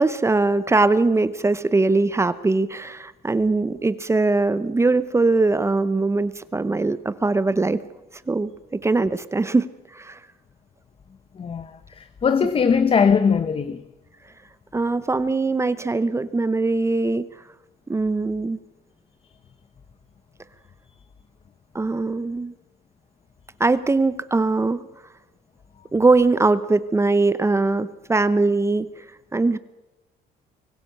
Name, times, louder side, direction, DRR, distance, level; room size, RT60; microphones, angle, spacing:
voice 1, 0.0-7.8 8.3-9.7 9.9-10.2 14.7-17.3 17.9-18.6 21.7-22.5 23.6-24.8 25.9-29.0 29.3-29.6, right 3 dB, 15° right, 0.9 m, -21 dB
voice 2, 11.3-13.8, left 6 dB, 35° left, 1.0 m, -20 dB
24.5 x 16.0 x 6.8 m
cardioid pair, 110°, 17 cm